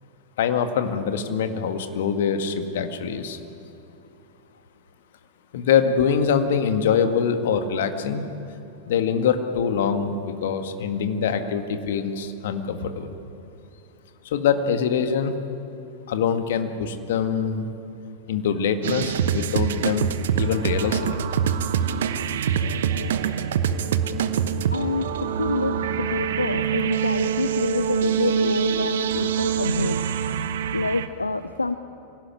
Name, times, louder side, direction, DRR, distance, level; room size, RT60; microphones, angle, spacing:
voice 1, 0.4-3.4 5.5-8.3 8.9-13.1 14.3-15.3 16.1-17.7 18.3-21.2, left 7 dB, 55° left, 8 dB, 1.8 m, -24 dB
sound 1, 18.8-31.1, right 8 dB, 60° right, 1.1 m, -25 dB
voice 2, 24.7-30.0 30.7-31.7, left 3 dB, 80° left, 11 dB, 0.6 m, -27 dB
25.5 x 17.5 x 9.8 m, 2.7 s
figure-of-eight pair, 90°, 0 cm